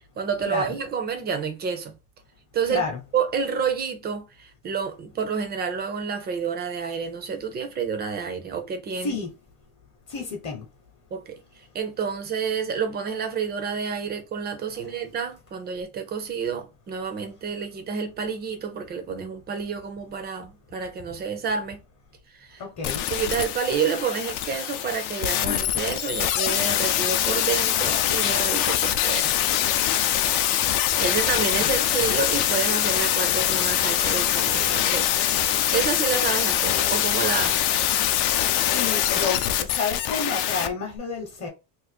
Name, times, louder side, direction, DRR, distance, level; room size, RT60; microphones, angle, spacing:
voice 1, 0.2-1.9 2.5-2.8 3.1-9.2 11.1-11.4 11.7-21.8 22.3-22.6 23.1-29.3 31.0-35.4 35.7-37.6, right 6 dB, 25° right, 0.4 m, -29 dB
voice 2, 2.7-3.0 9.0-9.3 10.1-10.6 22.6-23.1 31.6-31.7 38.7-41.5, left 4 dB, 40° left, 0.8 m, -30 dB
sound 1, 22.8-40.7 41.0-41.1, left 11 dB, 65° left, 0.5 m, -23 dB
2.5 x 2.4 x 4.0 m
cardioid pair, 170°, 43 cm